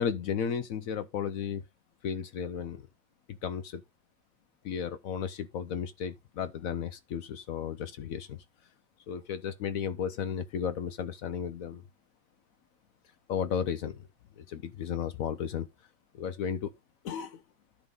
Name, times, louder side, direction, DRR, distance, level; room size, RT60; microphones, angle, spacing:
voice 1, 0.0-1.6 2.0-2.8 3.3-3.8 4.6-8.4 9.1-11.8 13.3-14.1 14.4-15.7 16.1-16.7 17.0-17.4, left 7 dB, 80° left, 0.7 m, -34 dB
10.5 x 3.7 x 5.4 m
omnidirectional pair, 2.2 m